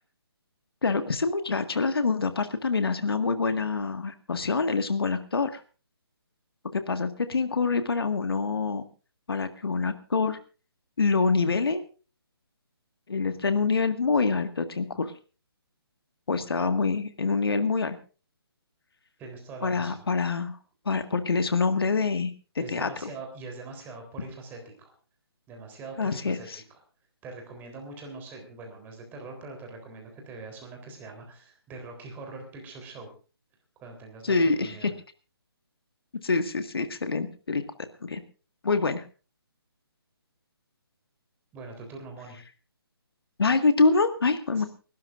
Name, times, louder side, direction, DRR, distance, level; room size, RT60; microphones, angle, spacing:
voice 1, 0.8-5.6 6.7-8.9 9.3-10.4 11.0-11.8 13.1-15.1 16.3-18.0 19.6-20.5 20.9-22.3 22.7-23.1 26.0-26.6 34.2-34.9 36.2-37.6 38.0-38.2 38.6-39.0 43.4-44.7, left 4 dB, 65° left, 9 dB, 1.8 m, -26 dB
voice 2, 19.2-20.0 22.6-24.9 25.5-26.8 27.2-33.1 33.8-34.4 34.6-34.9 41.5-42.4 44.5-44.6, right 3 dB, 15° right, 3 dB, 3.6 m, -43 dB
30.0 x 12.5 x 2.5 m, 0.35 s
figure-of-eight pair, 145°, 13 cm